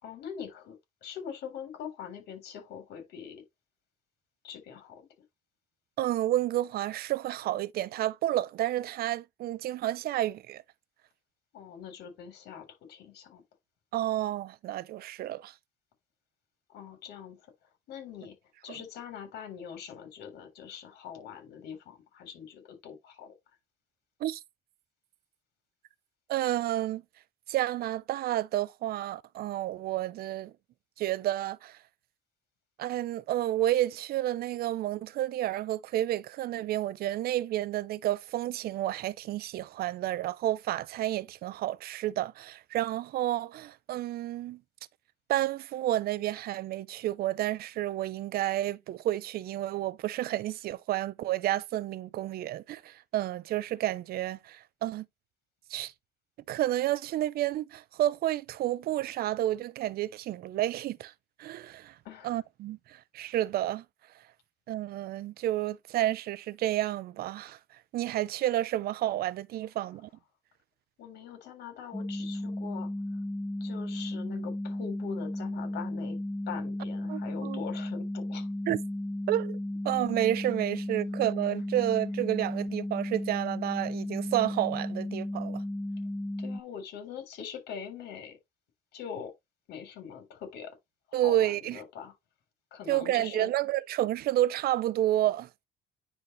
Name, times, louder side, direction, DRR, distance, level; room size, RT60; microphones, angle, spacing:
voice 1, 0.0-0.8 1.0-3.4 4.4-5.1 11.5-13.4 16.7-17.4 17.9-18.4 18.6-23.3 62.0-62.4 71.0-72.9 73.6-76.2 76.5-78.5 86.4-88.4 88.9-89.3 89.7-90.8 91.1-92.1 92.7-93.5, left 7 dB, 75° left, 3.7 m, -43 dB
voice 2, 6.0-10.6 13.9-15.5 18.7-18.8 24.2-24.4 26.3-27.0 27.5-30.5 31.0-31.8 32.8-44.6 45.3-55.1 55.7-55.9 56.5-61.1 61.4-62.0 62.2-63.8 64.7-67.6 67.9-70.1 77.1-77.6 78.7-78.8 79.3-79.6 79.8-85.6 91.1-91.8 92.9-95.5, right 14 dB, 65° right, 0.6 m, -30 dB
sound 1, 71.9-86.6, left 1 dB, 5° left, 0.5 m, -34 dB
9.8 x 4.1 x 3.1 m
cardioid pair, 110°, 17 cm